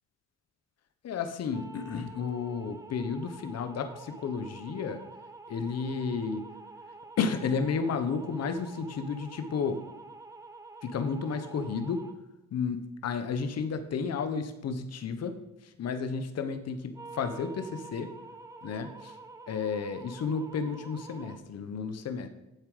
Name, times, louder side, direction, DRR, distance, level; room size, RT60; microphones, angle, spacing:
voice 1, 1.0-5.0 5.5-6.5 7.2-9.8 10.8-12.0 12.5-15.4 15.6-18.1 18.6-19.1 19.5-22.3, left 5 dB, 55° left, 8 dB, 1.1 m, -32 dB
sound 1, 1.5-12.2 16.9-21.4, right 3 dB, 10° right, 0.9 m, -48 dB
9.9 x 7.4 x 5.0 m, 0.97 s
cardioid pair, 90°, 30 cm